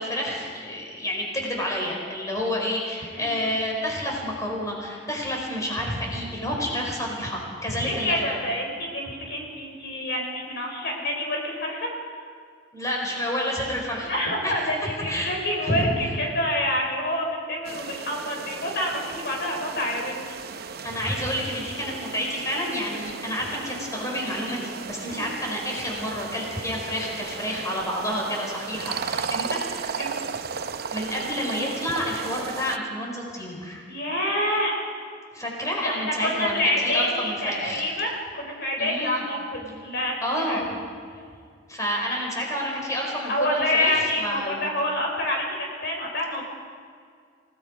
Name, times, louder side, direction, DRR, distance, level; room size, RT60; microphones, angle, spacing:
voice 1, 0.0-8.4 12.7-14.1 14.4-15.3 15.6-15.8 20.8-29.6 30.9-33.8 35.3-37.8 38.8-39.3 40.2-40.6 41.7-44.7, equal, 20° left, -1 dB, 4.7 m, -29 dB
voice 2, 7.8-11.9 14.0-20.6 25.1-25.3 30.0-30.2 33.9-34.8 35.8-40.7 43.3-46.4, left 1 dB, 60° left, 0 dB, 4.4 m, -27 dB
sound 1, 17.6-32.8, right 5 dB, 55° right, 0.7 m, -35 dB
29.0 x 18.5 x 5.2 m, 2.1 s
head